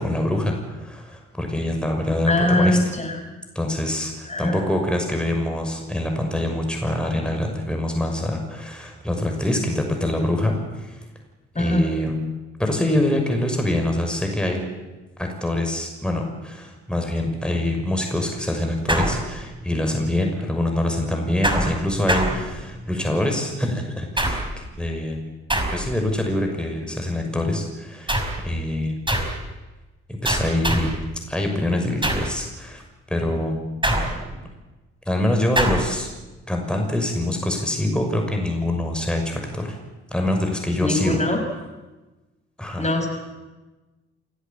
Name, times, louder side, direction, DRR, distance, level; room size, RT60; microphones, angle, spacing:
voice 1, 0.0-2.9 3.5-11.0 11.6-12.2 12.6-14.6 15.2-25.2 25.7-28.2 28.4-29.0 30.1-31.0 31.3-32.8 33.1-33.6 35.1-36.1 36.5-39.8 40.1-41.2 42.6-42.9, left 1 dB, 5° left, 3 dB, 6.3 m, -25 dB
voice 2, 2.3-3.2 4.3-4.6 11.5-11.9 40.8-41.4 42.8-43.1, left 1 dB, 20° left, 4 dB, 6.5 m, -22 dB
sound 1, 18.9-19.7 21.4-23.0 24.2-24.7 25.5-26.1 28.1-28.5 29.1-29.5 30.2-31.1 32.0-32.4 33.8-34.5 35.6-36.0, right 1 dB, 15° right, 6.3 m, -24 dB
29.5 x 16.5 x 8.7 m, 1.2 s
figure-of-eight pair, 45°, 32 cm